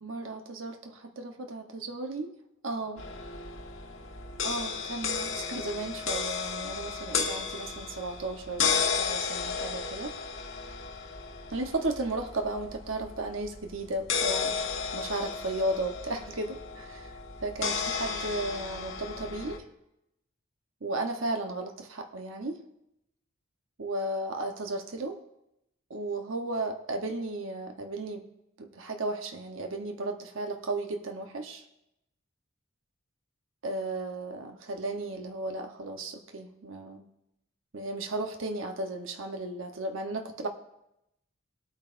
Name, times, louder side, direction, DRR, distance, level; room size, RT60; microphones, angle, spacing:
voice 1, 0.0-2.3 2.6-3.0 4.4-10.1 11.5-17.1 17.4-19.6 20.8-22.6 23.8-25.2 25.9-28.2 28.6-31.6 33.6-37.0 37.7-40.5, right 2 dB, 70° right, 5 dB, 0.9 m, -34 dB
sound 1, 3.0-19.6, left 5 dB, 65° left, 1.4 m, -34 dB
19.5 x 8.7 x 2.5 m, 0.85 s
head